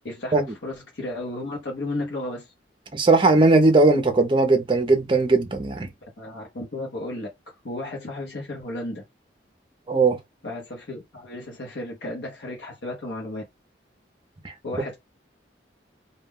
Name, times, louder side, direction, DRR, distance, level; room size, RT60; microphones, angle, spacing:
voice 1, 0.0-2.5 6.2-7.3 7.6-9.0 10.4-13.4 14.6-15.0, left 1 dB, 70° left, 0.8 m, -33 dB
voice 2, 2.9-5.9 9.9-10.2, right 3 dB, 25° right, 0.5 m, -18 dB
2.2 x 2.1 x 3.4 m
head